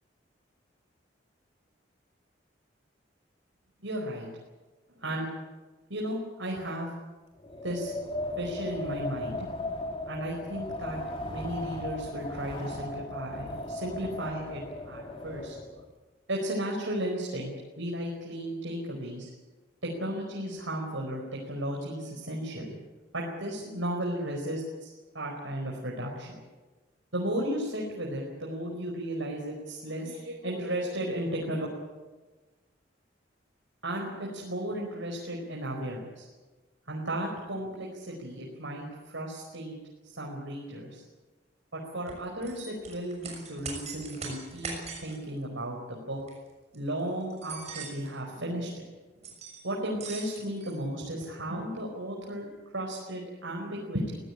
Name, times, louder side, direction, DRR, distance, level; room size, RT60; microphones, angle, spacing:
voice 1, 3.8-4.3 5.0-5.3 5.9-6.9 7.6-7.9 8.4-9.7 10.1-11.0 11.3-15.6 16.3-19.3 19.8-22.7 23.1-26.4 27.1-31.7 33.8-36.3 36.9-39.8 40.0-41.0 41.7-46.2 46.7-48.8 49.6-52.5 52.7-54.2, right 1 dB, 85° right, -2 dB, 4.9 m, -34 dB
Wind, 7.4-15.8, left 1 dB, 30° left, 2.8 m, -37 dB
sound 1, 42.1-45.2 46.2-46.4 46.7-46.8 47.3-48.2 49.2-49.6 49.9-51.5, right 4 dB, 35° right, 6.5 m, -41 dB
24.0 x 16.0 x 9.8 m, 1.3 s
head